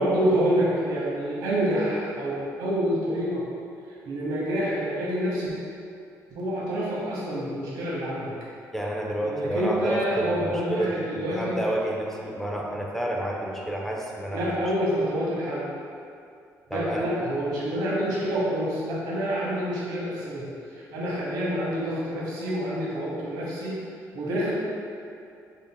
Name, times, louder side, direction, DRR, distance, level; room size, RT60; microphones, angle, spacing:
voice 1, 0.0-3.4 4.1-5.5 6.3-8.3 9.2-11.5 14.3-15.6 16.7-20.5 20.9-23.8 24.1-24.5, equal, 85° right, -7 dB, 1.0 m, -27 dB
voice 2, 8.7-14.7 16.7-17.1, right 1 dB, 5° left, -2 dB, 0.4 m, -30 dB
5.2 x 3.8 x 2.2 m, 2.5 s
cardioid pair, 155°, 7 cm